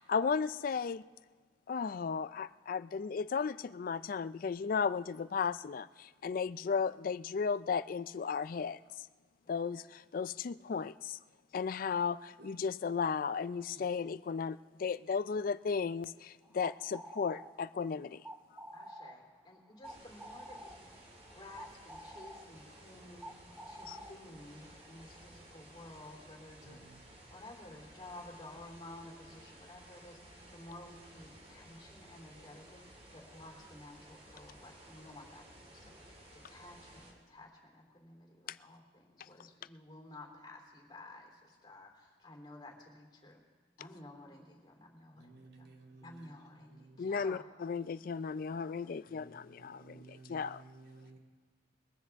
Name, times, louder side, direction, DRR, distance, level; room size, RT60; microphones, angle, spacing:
voice 1, 0.1-1.0 1.7-8.8 9.5-11.2 11.5-18.2 23.9-24.0 38.5-38.6 47.0-50.6, left 5 dB, 50° left, 0.4 m, -35 dB
sound 1, 16.4-25.3, right 1 dB, 5° right, 0.7 m, -51 dB
voice 2, 18.7-27.0 27.3-43.4 43.8-45.7 46.0-47.4 48.7-48.9 51.0-51.1, left 2 dB, 25° left, 3.3 m, -53 dB
sound 2, 19.8-37.1, right 1 dB, 35° right, 2.4 m, -56 dB
voice 3, 26.6-27.1 45.2-46.3 46.7-47.1 49.1-51.2, right 3 dB, 65° right, 2.4 m, -56 dB
22.0 x 14.5 x 3.5 m
head